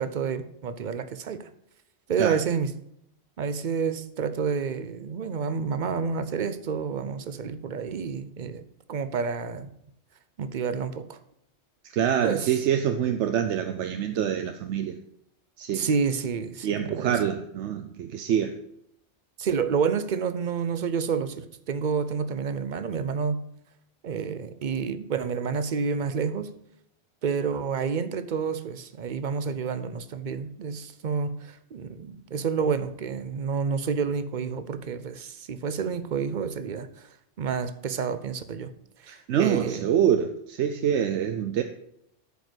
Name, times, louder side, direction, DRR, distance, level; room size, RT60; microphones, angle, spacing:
voice 1, 0.0-1.5 2.1-2.7 3.4-8.6 8.9-9.7 10.4-11.2 12.2-12.5 15.7-17.2 19.4-23.4 24.0-26.5 27.2-37.1 37.4-38.7 39.0-39.9, right 6 dB, 50° right, 12 dB, 0.7 m, -29 dB
voice 2, 11.9-15.0 15.6-15.9 16.6-18.6 39.1-41.6, right 9 dB, 80° right, 7 dB, 0.9 m, -26 dB
9.0 x 5.2 x 6.2 m, 0.75 s
omnidirectional pair, 1.2 m